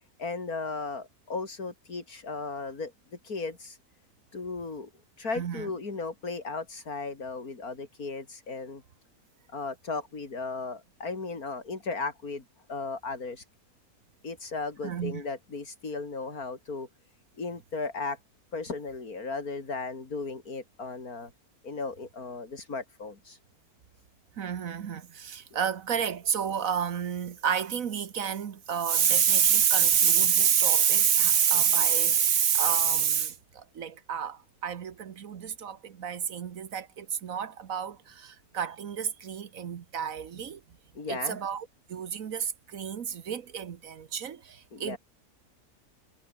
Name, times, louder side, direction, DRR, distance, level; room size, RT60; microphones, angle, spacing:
voice 1, 0.2-2.9 3.2-3.8 4.3-4.9 5.2-8.8 9.5-12.4 12.7-13.5 14.2-16.9 17.4-18.2 18.5-21.3 21.6-23.4 40.9-41.4 44.7-45.0, left 3 dB, 70° left, 4.0 m, -36 dB
voice 2, 5.2-5.7 14.8-15.2 24.4-40.6 41.1-45.0, right 8 dB, 65° right, 1.5 m, -28 dB
omnidirectional pair, 1.6 m